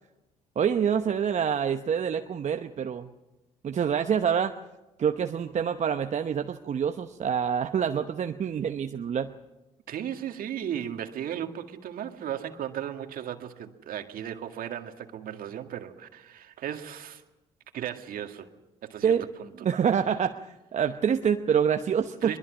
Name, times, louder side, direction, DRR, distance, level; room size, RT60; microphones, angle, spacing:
voice 1, 0.6-3.1 3.6-4.5 5.0-9.3 19.0-19.3 19.6-22.3, right 7 dB, 45° right, 7 dB, 0.9 m, -26 dB
voice 2, 9.9-17.2 17.7-18.5 18.8-19.7 22.2-22.4, right 10 dB, 60° right, 6 dB, 1.9 m, -36 dB
22.5 x 22.0 x 6.3 m, 1.0 s
hypercardioid pair, 55°, 16 cm